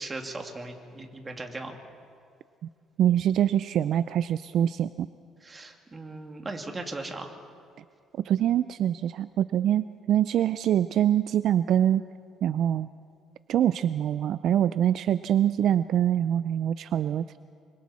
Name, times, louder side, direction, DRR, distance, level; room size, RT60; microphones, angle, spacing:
voice 1, 0.0-1.8 5.4-7.3, right 2 dB, 20° right, 3 dB, 2.3 m, -38 dB
voice 2, 3.0-5.1 8.2-12.0 12.4-12.9 13.5-17.4, right 10 dB, 60° right, 14 dB, 0.4 m, -24 dB
26.0 x 25.0 x 4.3 m, 2.3 s
cardioid pair, 115°, 0 cm